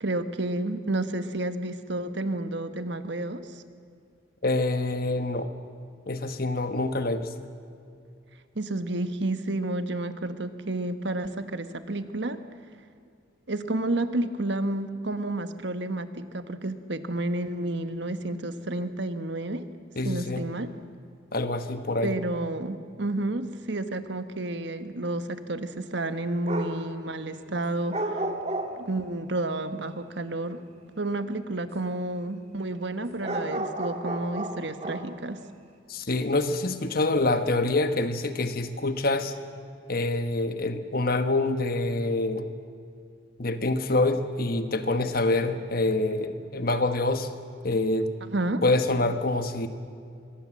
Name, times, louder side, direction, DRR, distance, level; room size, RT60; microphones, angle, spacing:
voice 1, 0.0-3.6 8.5-12.4 13.5-19.7 20.0-20.7 22.0-28.2 28.8-30.6 31.0-35.4 48.2-48.6, right 2 dB, 60° right, 10 dB, 1.2 m, -30 dB
voice 2, 4.4-5.5 6.1-7.3 20.0-20.4 21.3-22.1 35.9-39.3 39.9-42.5 43.4-47.3 47.6-48.1 48.6-49.7, left 2 dB, 50° left, 9 dB, 1.4 m, -26 dB
sound 1, 26.4-26.9 27.9-29.1 33.2-35.1, right 1 dB, 30° right, 1.8 m, -32 dB
24.5 x 21.5 x 7.6 m, 2.4 s
head